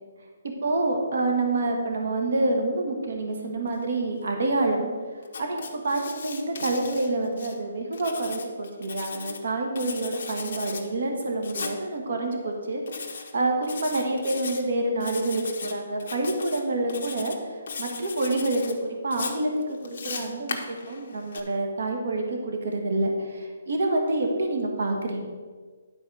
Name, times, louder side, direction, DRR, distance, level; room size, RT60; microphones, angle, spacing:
voice 1, 0.4-4.9 5.4-12.8 13.1-17.3 17.8-25.3, right 2 dB, 60° right, 2 dB, 1.5 m, -27 dB
Writing, 5.2-7.5 7.9-9.4 9.7-10.8 11.4-11.8 12.9-13.3 13.6-14.6 15.0-15.7 16.0-16.6 16.9-17.4 17.7-18.7 19.1-21.4, left 5 dB, 45° left, 1.1 m, -37 dB
11.0 x 4.2 x 6.1 m, 1.5 s
hypercardioid pair, 175°, 0 cm